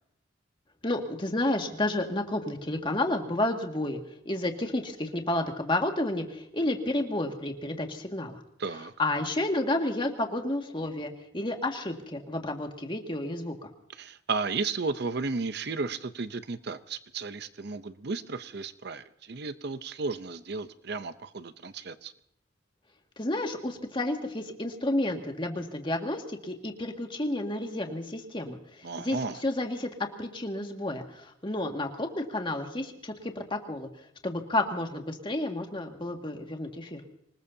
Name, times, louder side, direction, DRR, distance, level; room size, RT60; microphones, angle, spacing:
voice 1, 0.8-4.0 4.3-8.4 9.0-13.7 23.2-33.9 34.2-37.0, left 1 dB, 25° left, 3 dB, 2.0 m, -31 dB
voice 2, 8.6-8.9 13.9-22.1 28.8-29.4, right 4 dB, 60° right, 12 dB, 0.7 m, -34 dB
26.5 x 20.0 x 2.8 m, 0.75 s
head